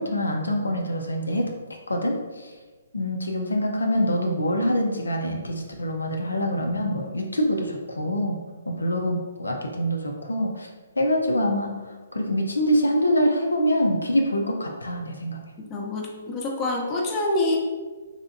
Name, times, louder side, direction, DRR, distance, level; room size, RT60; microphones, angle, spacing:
voice 1, 0.0-1.5 1.9-2.5 2.9-8.4 8.7-10.7 11.0-11.7 12.1-15.4, equal, 90° left, 2 dB, 0.4 m, -25 dB
voice 2, 15.7-17.6, left 2 dB, 25° left, -1 dB, 0.6 m, -26 dB
3.3 x 2.7 x 2.5 m, 1.3 s
figure-of-eight pair, 130°, 0 cm